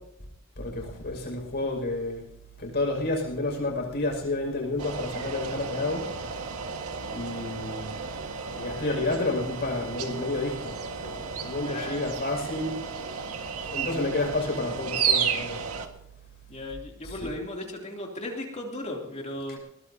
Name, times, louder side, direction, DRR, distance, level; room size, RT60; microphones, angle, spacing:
voice 1, 0.6-2.2 2.6-6.1 7.1-8.0 8.5-10.8 11.0-11.1 11.4-12.8 13.6-15.6 17.0-17.2, left 2 dB, 50° left, 0 dB, 6.1 m, -30 dB
sound 1, 4.8-15.9, right 6 dB, 85° right, 1.8 m, -33 dB
voice 2, 11.6-12.1 16.5-19.6, left 1 dB, 30° left, 0 dB, 3.1 m, -36 dB
21.0 x 19.0 x 2.8 m, 0.78 s
head